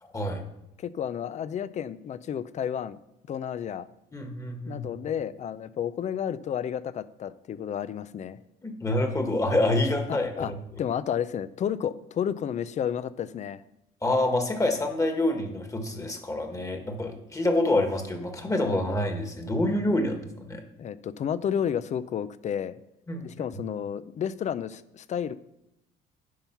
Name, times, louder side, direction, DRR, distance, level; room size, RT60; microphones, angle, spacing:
voice 1, 0.8-3.0 3.3-3.9 4.7-8.4 10.1-10.5 10.8-13.6 20.8-22.8 23.2-25.3, left 8 dB, 45° left, 16 dB, 0.5 m, -31 dB
voice 2, 4.1-4.9 8.6-10.5 14.0-20.6 23.1-23.2, left 1 dB, 20° left, 4 dB, 1.6 m, -27 dB
10.0 x 5.5 x 5.9 m, 0.84 s
cardioid pair, 110°, 17 cm